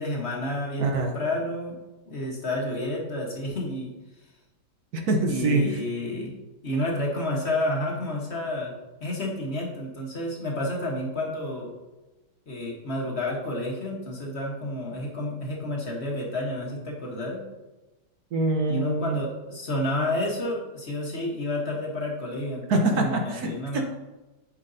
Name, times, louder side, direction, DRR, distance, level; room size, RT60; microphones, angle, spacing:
voice 1, 0.0-1.8 2.1-3.9 5.3-6.4 6.6-8.7 9.0-11.7 12.5-17.4 18.7-23.8, left 1 dB, 40° left, -2 dB, 1.4 m, -30 dB
voice 2, 0.8-1.1 4.9-5.8 18.3-19.1 22.7-23.8, right 2 dB, 65° right, 3 dB, 1.4 m, -24 dB
9.0 x 5.9 x 2.7 m, 1.1 s
omnidirectional pair, 1.8 m